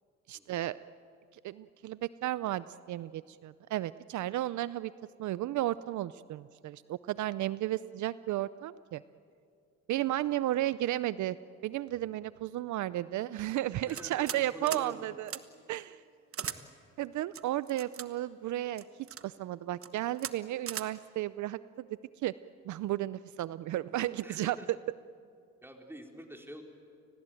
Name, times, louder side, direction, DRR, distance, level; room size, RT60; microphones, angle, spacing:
voice 1, 0.3-0.8 1.4-4.9 5.2-9.0 9.9-11.4 11.6-15.3 15.7-16.0 17.0-18.8 19.2-21.9 22.2-22.3 22.6-24.6, right 14 dB, 70° right, 16 dB, 0.6 m, -33 dB
voice 2, 13.9-15.1 16.4-16.7 24.2-24.7 25.6-26.6, right 1 dB, 10° right, 2 dB, 3.9 m, -47 dB
sound 1, 13.9-14.4 14.7-14.9 15.3-15.4 16.3-16.6 17.3-18.1 18.8-19.2 19.7-19.9 20.2-20.3 20.7-20.9, right 8 dB, 45° right, 1.2 m, -38 dB
30.0 x 19.5 x 9.1 m, 2.4 s
cardioid pair, 90°, 30 cm